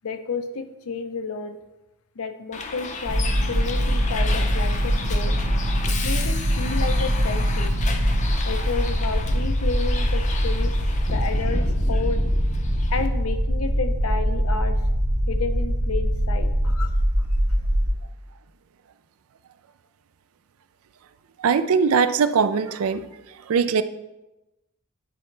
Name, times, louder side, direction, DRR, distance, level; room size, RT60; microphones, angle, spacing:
voice 1, 0.0-1.6 2.2-5.3 6.0-7.8 8.4-10.8 11.1-12.3 12.9-14.8 15.3-16.9, left 4 dB, 90° left, 8 dB, 0.7 m, -31 dB
Bus, 2.5-13.1, left 3 dB, 35° left, 0.5 m, -32 dB
sound 1, 3.1-17.9, equal, 45° right, 1.3 m, -23 dB
voice 2, 21.4-23.1 23.5-23.8, right 6 dB, 85° right, 12 dB, 0.4 m, -20 dB
9.7 x 4.3 x 3.2 m, 0.99 s
head